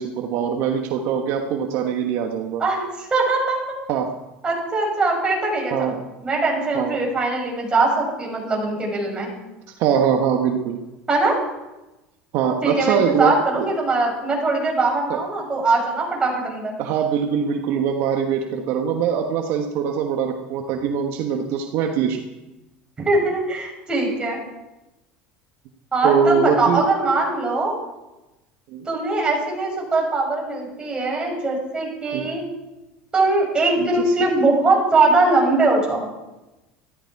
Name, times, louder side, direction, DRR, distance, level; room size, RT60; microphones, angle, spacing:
voice 1, 0.0-2.6 3.9-4.1 5.7-5.9 6.7-7.0 9.8-10.8 12.3-13.7 15.1-15.2 16.8-22.2 26.0-26.8 28.7-28.8 32.1-32.3 33.8-34.1, right 7 dB, 65° right, 3 dB, 1.4 m, -22 dB
voice 2, 2.6-3.6 4.4-5.9 6.2-9.3 11.1-11.4 12.6-16.7 23.0-24.4 25.9-27.7 28.8-32.4 33.1-36.1, right 3 dB, 20° right, -2 dB, 6.5 m, -21 dB
14.0 x 14.0 x 4.8 m, 1.0 s
supercardioid pair, 105°, 5 cm